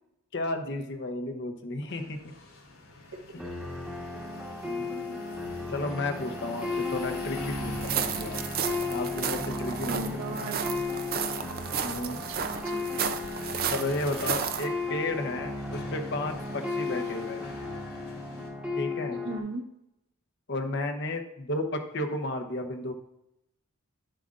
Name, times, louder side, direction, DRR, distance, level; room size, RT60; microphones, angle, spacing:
voice 1, 0.3-2.2 3.3-3.4 4.6-5.2 5.7-8.4 8.9-10.5 11.8-12.2 13.7-17.5 18.7-19.2 20.5-22.9, left 2 dB, 50° left, 4 dB, 0.8 m, -33 dB
sound 1, 1.9-18.5, left 2 dB, 85° left, 2.8 m, -46 dB
sound 2, 3.4-19.4, left 3 dB, 5° right, 1.1 m, -35 dB
sound 3, 7.7-14.7, right 7 dB, 45° right, 0.5 m, -33 dB
voice 2, 9.9-10.7 12.3-13.1 19.1-19.6, right 2 dB, 60° right, 1 dB, 1.3 m, -37 dB
11.5 x 7.6 x 2.5 m, 0.85 s
head